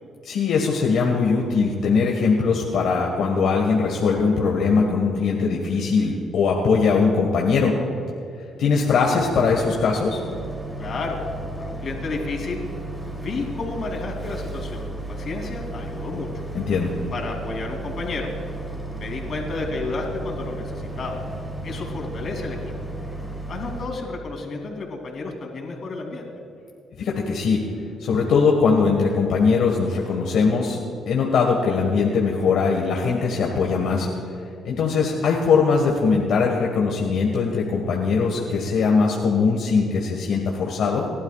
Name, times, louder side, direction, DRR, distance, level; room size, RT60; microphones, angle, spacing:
voice 1, 0.2-7.7 8.6-10.2 16.5-16.9 27.0-27.6 28.0-30.8 31.1-34.1 34.6-41.1, left 5 dB, 75° left, -1 dB, 1.6 m, -21 dB
Boat Water vehicle, 9.2-23.9, right 2 dB, 10° right, 3.4 m, -34 dB
voice 2, 10.8-11.2 11.6-12.6 13.2-16.3 17.1-18.3 18.9-21.2 21.6-22.6 23.5-26.3, left 3 dB, 55° left, 1 dB, 3.2 m, -31 dB
30.0 x 12.0 x 2.4 m, 2.5 s
cardioid pair, 90°, 0 cm